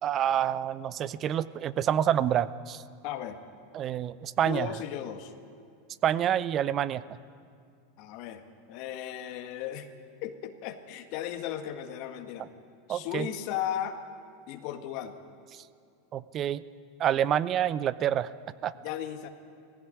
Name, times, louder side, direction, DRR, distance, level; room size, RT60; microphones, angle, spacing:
voice 1, 0.0-2.8 3.7-4.7 6.0-7.0 12.9-13.3 16.1-16.6 17.0-18.3 18.6-18.7, right 10 dB, 40° right, 17 dB, 0.7 m, -27 dB
voice 2, 3.0-3.4 4.4-5.3 8.0-8.4 8.7-9.9 10.2-12.5 12.9-14.0 14.5-15.2 18.8-19.3, left 10 dB, 55° left, 7 dB, 1.7 m, -36 dB
18.5 x 16.0 x 9.8 m, 2.3 s
hypercardioid pair, 95°, 0 cm